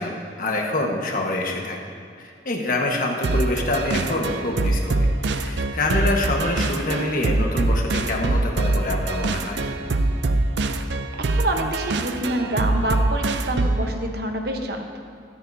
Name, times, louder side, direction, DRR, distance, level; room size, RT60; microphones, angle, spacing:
voice 1, 0.0-1.8 2.2-9.6, left 2 dB, 50° left, 0 dB, 1.4 m, -26 dB
sound 1, 3.2-13.9, right 2 dB, 80° right, 0.5 m, -24 dB
voice 2, 10.9-15.0, right 1 dB, 60° right, 3 dB, 1.0 m, -27 dB
13.5 x 13.0 x 2.7 m, 2.5 s
head